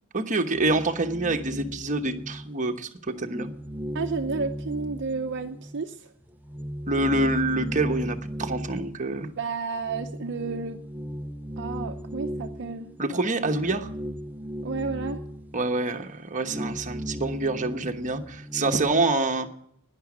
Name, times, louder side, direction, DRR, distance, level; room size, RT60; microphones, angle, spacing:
voice 1, 0.1-3.5 6.9-9.3 13.0-13.9 15.5-19.5, right 2 dB, 35° right, 5 dB, 1.1 m, -26 dB
sound 1, 0.5-2.8 3.1-5.9 6.2-19.1, equal, 10° right, 0.6 m, -36 dB
voice 2, 3.9-6.1 9.3-10.8 11.6-12.9 13.4-13.5 14.6-15.2, right 4 dB, 55° right, 5 dB, 0.7 m, -31 dB
11.0 x 10.5 x 8.4 m, 0.70 s
head